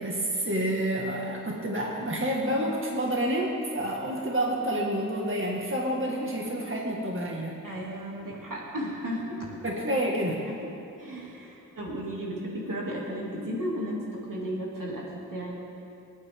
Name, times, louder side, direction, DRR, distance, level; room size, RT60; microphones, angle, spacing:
voice 1, 0.0-7.6 9.6-10.5, right 1 dB, 40° right, -2 dB, 2.1 m, -29 dB
voice 2, 7.6-9.6 10.5-10.6 11.0-15.6, equal, 75° right, -4 dB, 3.0 m, -34 dB
27.0 x 9.2 x 3.9 m, 2.9 s
cardioid pair, 45°, 33 cm